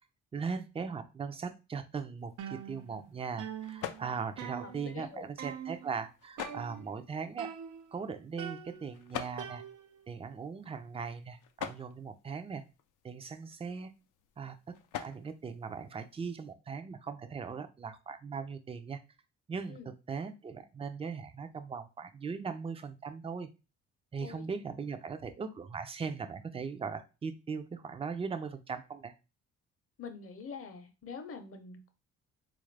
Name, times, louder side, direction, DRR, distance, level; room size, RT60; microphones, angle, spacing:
voice 1, 0.3-7.5 7.9-9.6 10.1-12.6 13.0-13.9 14.4-14.6 14.9-19.0 19.5-19.8 20.1-23.5 24.1-29.1, right 5 dB, 20° right, 9 dB, 0.4 m, -39 dB
sound 1, 2.2-16.5, left 10 dB, 85° left, 0.5 m, -48 dB
sound 2, 2.4-3.1 3.4-5.1 5.4-5.9 6.4-7.1 7.4-8.0 8.4-10.1, right 8 dB, 90° right, 0.6 m, -44 dB
voice 2, 4.6-5.3 19.7-19.9 24.2-24.4 30.0-31.9, left 5 dB, 50° left, 7 dB, 0.8 m, -45 dB
3.7 x 2.5 x 3.2 m, 0.29 s
cardioid pair, 90°, 30 cm